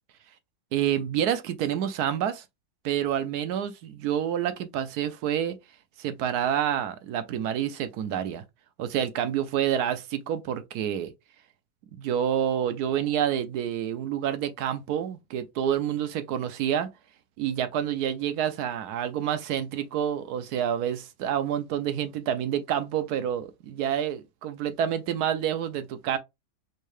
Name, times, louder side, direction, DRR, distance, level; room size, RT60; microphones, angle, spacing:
voice 1, 0.7-2.4 2.8-5.6 6.0-8.4 8.8-11.1 11.9-16.9 17.4-26.2, right 9 dB, 70° right, 1.1 m, -28 dB
4.5 x 2.2 x 3.2 m
omnidirectional pair, 1.9 m